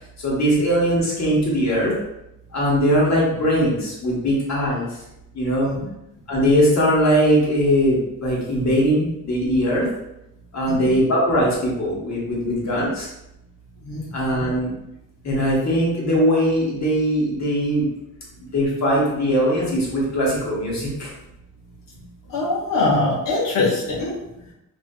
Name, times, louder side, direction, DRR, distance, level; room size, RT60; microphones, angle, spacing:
voice 1, 0.2-1.9 2.5-4.9 5.4-5.7 6.3-9.9 10.5-13.1 14.1-14.7 15.2-17.8 18.5-20.9, equal, 50° left, -4 dB, 1.1 m, -20 dB
voice 2, 22.3-24.1, left 2 dB, 70° left, -6 dB, 0.9 m, -22 dB
2.6 x 2.4 x 2.2 m, 0.85 s
cardioid pair, 65°, 34 cm